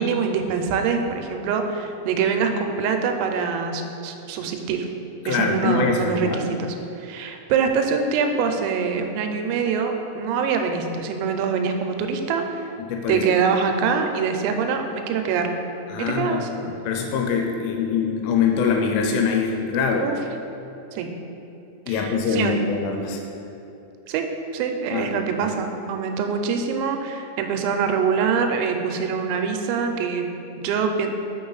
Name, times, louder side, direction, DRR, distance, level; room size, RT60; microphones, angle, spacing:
voice 1, 0.0-4.9 5.3-12.6 13.1-15.5 16.0-16.5 20.0-20.2 20.9-21.1 21.9-22.6 24.1-24.3 24.5-31.1, right 6 dB, 85° right, 5 dB, 3.2 m, -24 dB
voice 2, 5.3-6.6 12.9-13.2 15.9-20.1 21.9-23.2 24.9-25.2, left 5 dB, 85° left, 2 dB, 3.0 m, -24 dB
6.5 x 6.2 x 3.9 m, 2.9 s
omnidirectional pair, 5.9 m